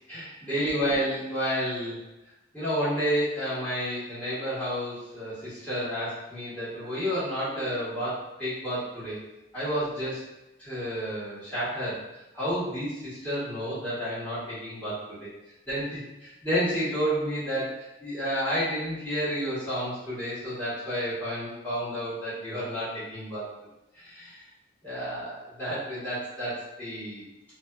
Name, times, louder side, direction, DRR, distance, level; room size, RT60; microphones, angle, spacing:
voice 1, 0.1-2.0 2.5-9.2 9.5-10.3 10.6-12.0 12.3-15.3 15.7-23.5 23.9-24.4 24.8-27.2, equal, 10° left, -13 dB, 1.3 m, -31 dB
2.8 x 2.2 x 2.3 m, 0.94 s
head